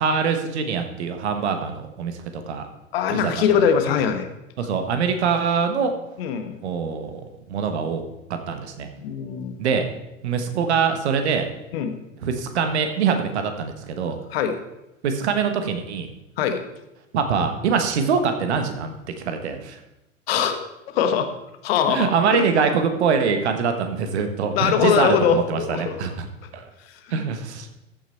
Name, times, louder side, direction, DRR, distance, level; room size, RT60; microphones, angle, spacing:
voice 1, 0.0-2.2 2.5-2.7 3.1-3.3 4.6-5.9 6.6-7.2 7.5-8.0 8.5-8.9 9.6-9.8 10.2-11.5 12.2-14.2 15.0-16.1 17.1-18.9 19.2-19.8 21.9-26.3 26.5-26.7 27.1-27.7, right 6 dB, 55° right, 7 dB, 1.5 m, -23 dB
voice 2, 2.9-4.3 6.2-6.6 9.0-9.5 11.7-12.0 14.3-14.6 16.4-16.6 20.3-20.6 20.9-21.3 21.6-22.4 24.5-26.1, left 7 dB, 50° left, 8 dB, 1.3 m, -22 dB
14.0 x 6.3 x 4.4 m, 0.92 s
figure-of-eight pair, 95°, 39 cm